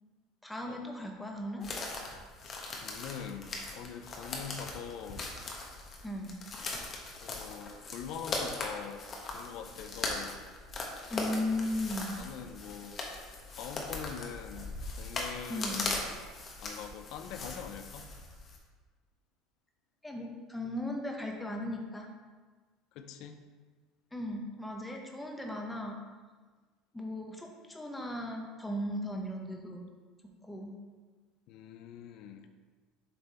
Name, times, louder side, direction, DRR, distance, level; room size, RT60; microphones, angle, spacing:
voice 1, 0.4-1.7 6.0-6.4 11.1-12.2 15.5-15.8 20.0-22.1 24.1-26.0 26.9-29.8 30.4-30.7, left 1 dB, 10° left, 1 dB, 1.0 m, -37 dB
sound 1, 1.6-18.6, left 3 dB, 35° left, 1.1 m, -40 dB
voice 2, 2.4-5.3 7.2-9.1 9.3-10.4 12.2-16.0 16.6-18.1 22.9-23.4 31.5-32.5, left 8 dB, 65° left, 7 dB, 0.5 m, -44 dB
6.7 x 3.4 x 4.3 m, 1.4 s
supercardioid pair, 105°, 0 cm